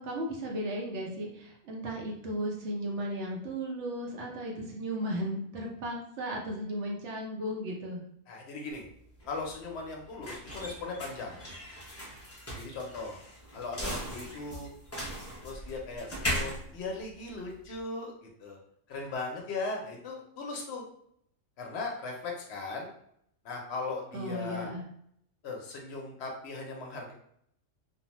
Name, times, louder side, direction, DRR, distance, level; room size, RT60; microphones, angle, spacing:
voice 1, 0.0-8.0 24.1-24.8, equal, 70° right, -1 dB, 0.9 m, -35 dB
voice 2, 8.3-8.8 9.3-11.4 12.6-13.2 13.5-14.7 15.4-18.6 18.9-20.8 21.6-22.9 23.4-24.7 25.4-27.1, left 3 dB, 65° left, 0 dB, 0.7 m, -38 dB
sound 1, 8.7-17.8, equal, 20° left, 0.4 m, -39 dB
2.5 x 2.1 x 2.9 m, 0.69 s
omnidirectional pair, 1.3 m